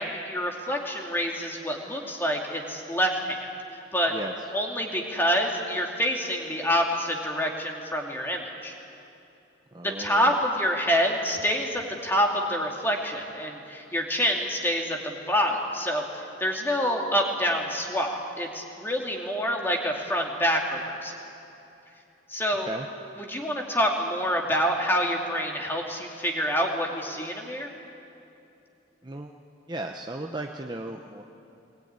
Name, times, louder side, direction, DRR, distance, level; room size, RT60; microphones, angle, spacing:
voice 1, 0.0-3.5 3.9-4.1 4.5-8.7 9.8-16.0 16.4-21.2 22.3-22.7 23.3-27.7, equal, 10° left, 1 dB, 2.4 m, -27 dB
voice 2, 9.7-10.4 22.6-22.9 29.0-29.3 29.7-31.2, right 2 dB, 20° right, 3 dB, 0.8 m, -35 dB
21.0 x 20.5 x 9.5 m, 2.8 s
head